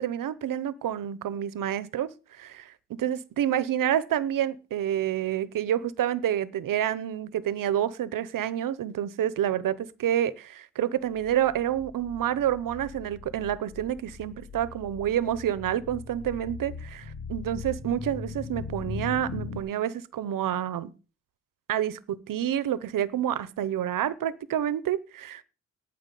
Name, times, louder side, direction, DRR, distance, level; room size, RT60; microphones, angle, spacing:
voice 1, 0.0-20.9 21.7-25.4, right 10 dB, 85° right, 0.9 m, -28 dB
sound 1, 11.2-19.6, left 4 dB, 75° left, 2.6 m, -40 dB
9.3 x 7.3 x 9.0 m
wide cardioid pair, 130°, 32 cm